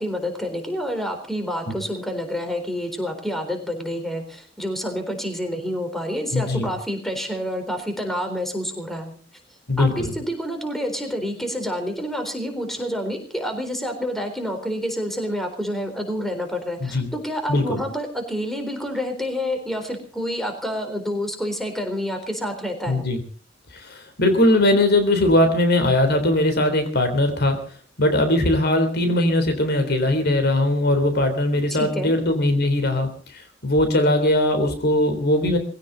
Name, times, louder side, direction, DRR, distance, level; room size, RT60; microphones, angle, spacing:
voice 1, 0.0-9.2 9.8-23.0 31.8-32.1, equal, ahead, 5 dB, 4.1 m, -28 dB
voice 2, 6.3-6.7 9.7-10.1 16.8-17.1 17.5-17.8 22.9-23.2 23.7-27.6 28.0-35.6, left 1 dB, 55° left, 8 dB, 3.5 m, -20 dB
21.0 x 16.5 x 4.0 m, 0.41 s
head